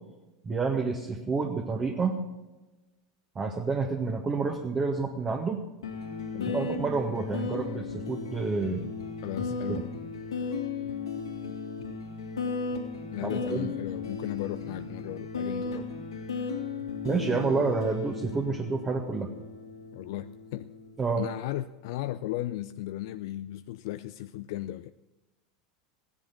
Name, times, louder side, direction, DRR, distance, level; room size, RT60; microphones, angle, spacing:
voice 1, 0.4-2.3 3.4-5.6 6.5-8.9 9.7-9.8 13.2-13.7 17.0-19.3 21.0-21.3, right 4 dB, 25° right, 2 dB, 1.7 m, -29 dB
sound 1, 5.8-20.9, left 4 dB, 80° left, 2.8 m, -36 dB
voice 2, 9.2-9.9 13.1-15.9 19.9-20.7 21.1-24.9, left 14 dB, 60° left, 11 dB, 0.5 m, -36 dB
16.5 x 10.5 x 6.1 m, 1.1 s
hypercardioid pair, 85°, 2 cm